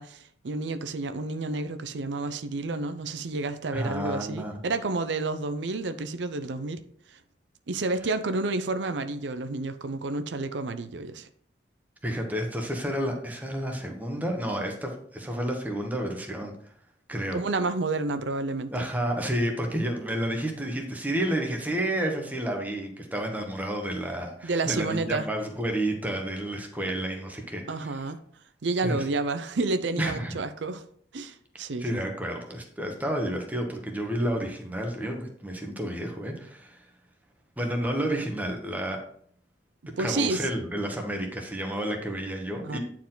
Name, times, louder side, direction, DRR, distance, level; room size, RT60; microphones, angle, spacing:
voice 1, 0.0-6.8 7.1-7.2 7.7-11.3 17.3-18.8 24.4-25.3 27.7-28.2 28.6-30.8 31.1-32.0 40.0-40.5 42.6-42.8, right 3 dB, 80° right, 0.6 m, -30 dB
voice 2, 3.7-4.6 12.0-16.5 17.1-17.4 18.7-28.0 28.8-29.0 30.0-30.4 31.8-36.8 37.6-39.0 40.0-42.8, right 1 dB, 10° right, 1.2 m, -30 dB
9.3 x 4.5 x 3.9 m
head